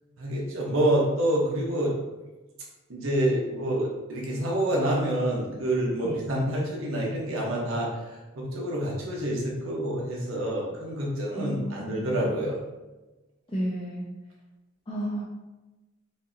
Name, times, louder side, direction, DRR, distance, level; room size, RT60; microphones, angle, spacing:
voice 1, 0.2-1.9 2.9-7.9 8.3-12.6, right 1 dB, 85° right, -3 dB, 1.0 m, -27 dB
voice 2, 11.4-12.3 13.5-14.0 14.9-15.2, equal, 25° left, -6 dB, 0.6 m, -32 dB
5.4 x 2.7 x 2.7 m, 1.1 s
head